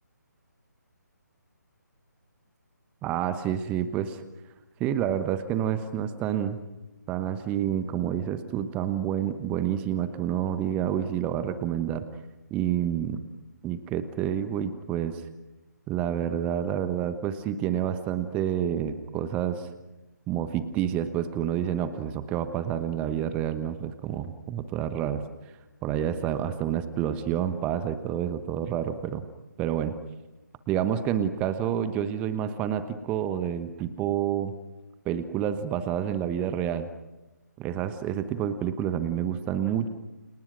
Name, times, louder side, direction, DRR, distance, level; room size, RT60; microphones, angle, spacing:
voice 1, 3.0-4.2 4.8-6.6 7.1-12.0 12.5-13.2 13.6-15.2 15.9-19.7 20.3-25.2 25.8-29.2 29.6-30.0 30.7-34.5 35.0-36.9 37.6-39.9, right 10 dB, 10° right, 12 dB, 1.1 m, -28 dB
30.0 x 27.5 x 6.2 m, 1.0 s
figure-of-eight pair, 145°, 10 cm